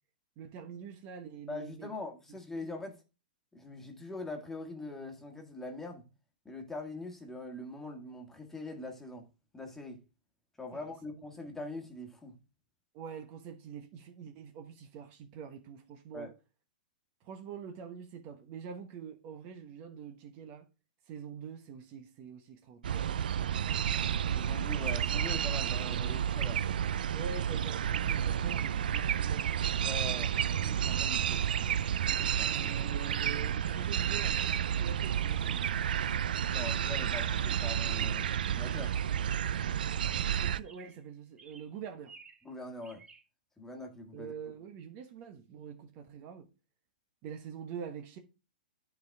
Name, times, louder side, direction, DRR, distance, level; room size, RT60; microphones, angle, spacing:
voice 1, 0.4-1.9 2.6-2.7 10.7-10.8 12.9-16.3 17.2-20.7 21.0-23.2 27.1-29.5 32.5-35.6 40.3-42.2 44.1-46.5 47.2-48.2, right 7 dB, 40° right, 1.2 m, -45 dB
voice 2, 1.5-3.0 3.5-6.1 6.5-9.3 9.5-10.0 10.6-12.4 16.1-16.3 24.4-26.6 29.8-32.7 36.5-38.3 38.5-38.9 42.4-43.0 43.6-44.3, left 2 dB, 5° left, 1.8 m, -43 dB
sound 1, 22.8-40.6, right 9 dB, 70° right, 0.4 m, -31 dB
Chirp tweet, 33.6-34.7 36.6-37.1 37.3-39.7 40.0-41.1 41.4-42.5 42.8-43.2, right 4 dB, 15° right, 1.4 m, -57 dB
10.5 x 4.8 x 3.5 m
hypercardioid pair, 125°, 5 cm